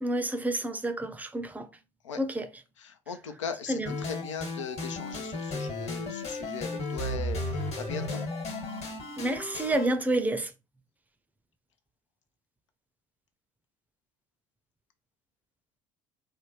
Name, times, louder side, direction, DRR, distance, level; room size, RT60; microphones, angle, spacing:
voice 1, 0.0-1.7 2.2-2.5 3.7-3.9 9.2-10.5, right 1 dB, 10° right, 0.5 m, -29 dB
voice 2, 2.8-8.2, left 7 dB, 85° left, 0.5 m, -39 dB
sound 1, 3.8-9.9, left 2 dB, 45° left, 1.3 m, -34 dB
3.3 x 2.2 x 2.9 m
hypercardioid pair, 60°, 15 cm